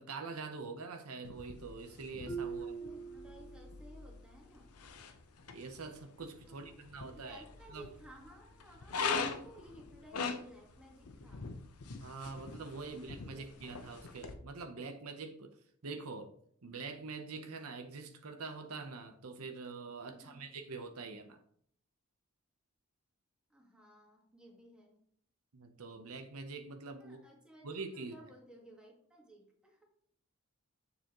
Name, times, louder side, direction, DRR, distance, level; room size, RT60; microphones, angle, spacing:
voice 1, 0.0-2.7 5.5-7.4 7.7-7.9 12.0-15.6 15.8-16.3 16.6-21.4 25.5-27.2 27.6-28.1, right 4 dB, 80° right, 0.8 m, -45 dB
sound 1, 1.2-14.3, left 5 dB, 90° left, 0.8 m, -43 dB
Marimba xylophone, 2.3-4.0, right 5 dB, 15° left, 0.6 m, -43 dB
voice 2, 2.4-4.7 6.5-11.5 12.9-13.9 20.1-20.5 23.5-25.0 27.0-29.8, right 1 dB, 5° right, 1.6 m, -57 dB
7.1 x 6.9 x 3.0 m
head